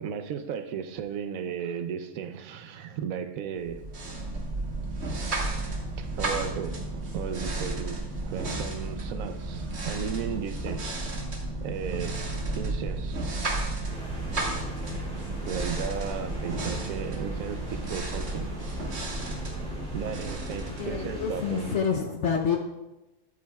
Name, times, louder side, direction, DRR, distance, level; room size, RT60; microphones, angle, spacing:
voice 1, 0.0-3.8 6.0-10.9 11.6-13.3 15.5-18.5 19.9-21.7, right 7 dB, 70° right, 9 dB, 0.9 m, -35 dB
sound 1, 3.6-21.5, right 2 dB, 45° right, 1.5 m, -33 dB
sound 2, 13.9-21.8, left 1 dB, 5° left, 2.5 m, -40 dB
voice 2, 20.7-22.6, left 6 dB, 60° left, 3 dB, 0.8 m, -28 dB
12.5 x 8.5 x 2.3 m, 1.0 s
omnidirectional pair, 1.7 m